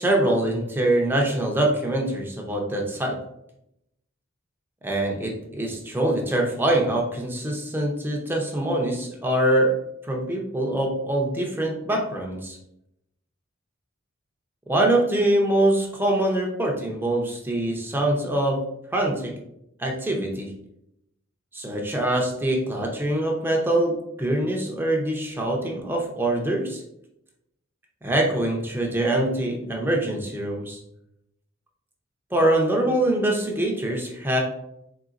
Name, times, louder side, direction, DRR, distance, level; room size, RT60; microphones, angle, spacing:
voice 1, 0.0-3.2 4.8-9.8 10.1-12.6 14.7-19.3 19.8-20.5 21.5-26.8 28.0-30.8 32.3-34.4, right 1 dB, 10° right, 0 dB, 0.6 m, -24 dB
3.9 x 3.7 x 2.5 m, 0.79 s
head